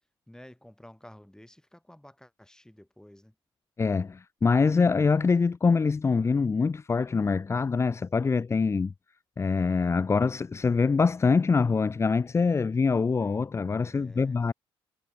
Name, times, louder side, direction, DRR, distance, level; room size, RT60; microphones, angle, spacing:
voice 1, 0.3-3.3 13.9-14.4, left 1 dB, 5° left, 7.0 m, -51 dB
voice 2, 3.8-8.9 9.4-14.5, left 4 dB, 25° left, 0.4 m, -24 dB
supercardioid pair, 60°, 11 cm